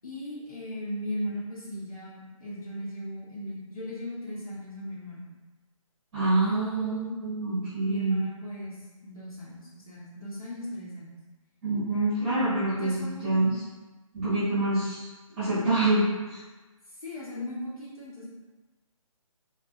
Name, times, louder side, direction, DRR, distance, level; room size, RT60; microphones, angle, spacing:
voice 1, 0.0-5.3 6.4-7.2 7.8-11.1 12.7-13.6 14.2-14.4 17.0-18.3, left 1 dB, 85° left, -7 dB, 1.0 m, -37 dB
voice 2, 6.1-8.2 11.6-13.5 14.1-15.1 15.4-16.4, right 2 dB, 20° right, -14 dB, 0.9 m, -26 dB
2.3 x 2.3 x 2.5 m, 1.2 s
figure-of-eight pair, 155°, 18 cm